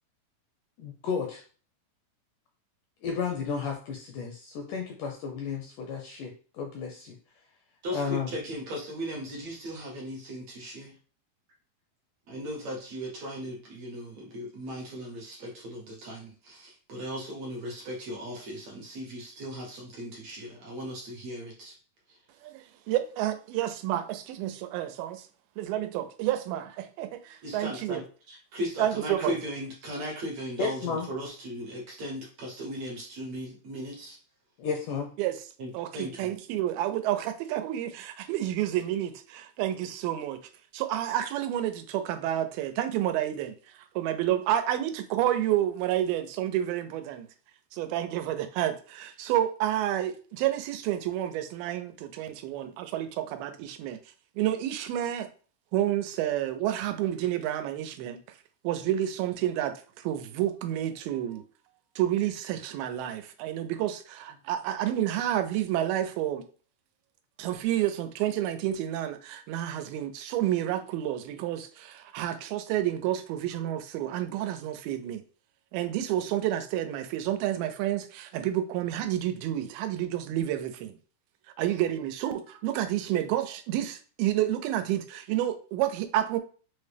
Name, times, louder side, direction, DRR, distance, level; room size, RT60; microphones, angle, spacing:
voice 1, 0.8-1.4 3.0-7.2 7.9-8.3 30.6-31.1 34.6-35.1, left 5 dB, 85° left, 1 dB, 1.8 m, -33 dB
voice 2, 7.8-10.9 12.3-21.7 27.4-34.2 35.6-36.3, equal, 70° right, -2 dB, 1.6 m, -37 dB
voice 3, 22.4-25.3 25.6-28.0 28.8-29.3 35.2-35.4 35.7-40.4 40.7-43.5 44.0-47.3 47.7-54.0 54.4-55.3 55.7-58.2 58.6-61.4 62.0-66.4 67.4-75.2 75.7-81.0 81.6-86.4, right 12 dB, 85° right, 9 dB, 2.4 m, -29 dB
6.0 x 2.1 x 3.3 m, 0.38 s
omnidirectional pair, 4.2 m